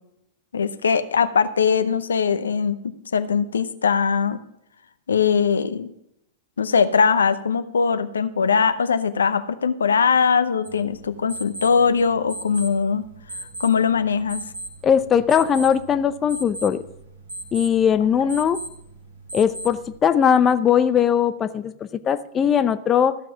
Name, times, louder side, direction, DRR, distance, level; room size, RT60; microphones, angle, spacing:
voice 1, 0.5-4.4 5.1-5.9 6.6-13.1 13.6-14.4, left 6 dB, 80° left, 11 dB, 0.7 m, -21 dB
sound 1, 10.6-20.0, right 2 dB, 90° right, 3.6 m, -38 dB
voice 2, 14.8-16.8 17.5-18.6 19.3-23.2, left 8 dB, 25° left, 12 dB, 0.6 m, -19 dB
14.5 x 6.0 x 5.9 m, 0.76 s
figure-of-eight pair, 100°, 0 cm